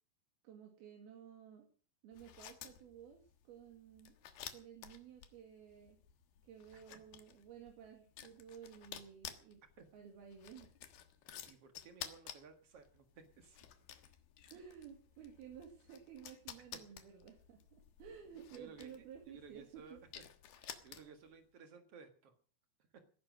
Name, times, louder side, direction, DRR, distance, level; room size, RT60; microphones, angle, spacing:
voice 1, 0.4-1.7 2.0-4.2 4.5-6.0 6.4-9.6 9.9-10.7 14.5-17.6 18.0-20.0, right 8 dB, 60° right, 3 dB, 3.7 m, -54 dB
sound 1, 2.1-21.3, left 10 dB, 65° left, 2.9 m, -54 dB
voice 2, 11.4-13.1 13.4-13.6 14.5-14.6 18.5-20.2 20.5-22.3, right 5 dB, 80° right, 7 dB, 1.3 m, -58 dB
18.5 x 11.0 x 6.3 m, 0.42 s
omnidirectional pair, 5.6 m